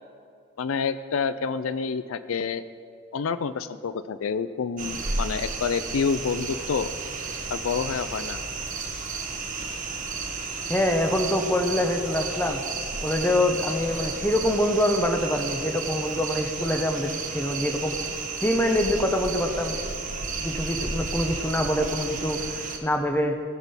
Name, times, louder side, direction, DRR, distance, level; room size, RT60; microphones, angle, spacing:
voice 1, 0.6-2.6 3.1-6.9 7.5-8.4, left 5 dB, 75° left, 13 dB, 0.4 m, -28 dB
sound 1, 4.8-22.8, right 4 dB, 40° right, 1.2 m, -32 dB
voice 2, 10.7-12.6 13.0-18.0 18.4-19.8 20.4-22.4 22.8-23.4, left 1 dB, 10° left, 4 dB, 0.8 m, -25 dB
18.0 x 6.0 x 5.7 m, 2.3 s
head